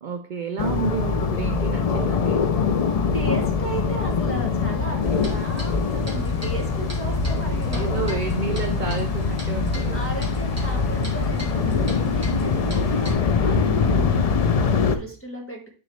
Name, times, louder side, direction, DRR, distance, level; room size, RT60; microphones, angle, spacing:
voice 1, 0.0-2.7 7.7-10.0 12.6-13.1, right 5 dB, 55° right, 6 dB, 0.6 m, -31 dB
sound 1, 0.6-15.0, left 5 dB, 50° left, 0.4 m, -23 dB
voice 2, 3.1-8.1 8.8-8.9 9.9-15.7, right 1 dB, 10° left, 0 dB, 1.4 m, -35 dB
Clock, 5.0-13.1, right 1 dB, 15° right, 1.7 m, -38 dB
9.4 x 3.9 x 3.2 m, 0.39 s
omnidirectional pair, 1.2 m